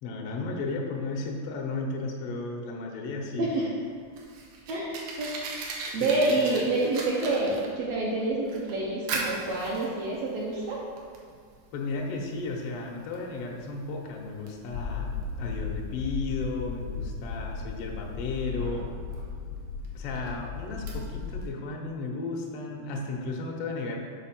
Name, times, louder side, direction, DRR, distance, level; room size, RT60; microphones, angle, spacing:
voice 1, 0.0-3.5 6.0-6.6 11.7-18.9 19.9-24.0, left 3 dB, 70° left, 0 dB, 1.4 m, -34 dB
voice 2, 3.4-3.7 4.7-5.3 5.9-10.8, right 2 dB, 70° right, -5 dB, 1.7 m, -27 dB
Fire, 3.8-21.5, right 3 dB, 90° right, 2.5 m, -41 dB
sound 1, 14.7-21.4, left 5 dB, 85° left, 2.1 m, -36 dB
6.2 x 4.4 x 5.9 m, 2.1 s
omnidirectional pair, 3.7 m